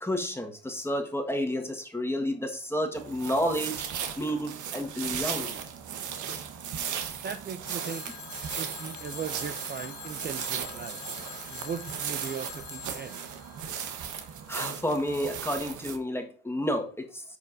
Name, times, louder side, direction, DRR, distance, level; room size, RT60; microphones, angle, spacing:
voice 1, 0.0-3.8 4.2-5.6 14.5-17.2, equal, 10° left, 1.6 m, -30 dB
sound 1, 2.9-16.0, right 8 dB, 75° right, 1.2 m, -36 dB
voice 2, 7.2-8.0 8.6-11.0 11.5-13.2, right 7 dB, 35° right, 0.5 m, -38 dB
Telephone, 7.6-14.5, left 12 dB, 80° left, 1.0 m, -45 dB
14.0 x 5.3 x 2.7 m
cardioid pair, 90°, 30 cm